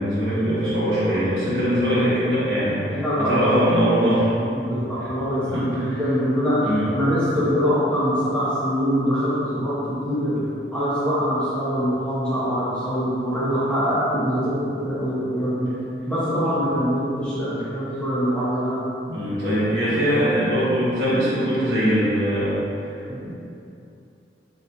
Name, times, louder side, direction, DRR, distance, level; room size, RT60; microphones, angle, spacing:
voice 1, 0.0-4.3 5.0-5.1 5.4-6.0 6.6-6.9 19.1-22.6 23.2-23.3, equal, 70° right, -10 dB, 1.1 m, -22 dB
voice 2, 2.9-3.6 4.5-6.7 6.9-9.7 10.0-10.4 10.7-15.7 16.1-18.8 23.1-23.2, equal, 5° left, -11 dB, 0.6 m, -23 dB
4.0 x 2.6 x 2.2 m, 2.7 s
head